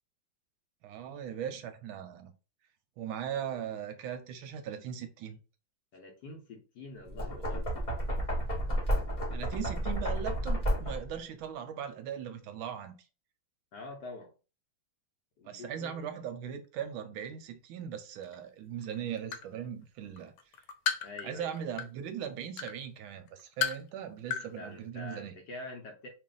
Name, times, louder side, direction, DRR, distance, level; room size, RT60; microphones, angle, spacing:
voice 1, 0.8-2.3 3.0-5.4 9.3-13.0 15.4-20.3 21.2-25.3, right 9 dB, 80° right, 1.3 m, -39 dB
voice 2, 5.9-7.8 13.7-14.3 15.4-16.1 21.0-21.5 24.6-26.1, left 2 dB, 65° left, 1.3 m, -45 dB
Knock, 7.0-11.2, equal, 25° left, 0.9 m, -31 dB
sound 1, 18.2-18.3 18.8-19.5 20.0-22.1 22.6-22.7 23.3-23.9 24.2-24.5 24.7-24.8, left 8 dB, 90° left, 1.5 m, -33 dB
3.3 x 2.5 x 3.7 m
omnidirectional pair, 2.3 m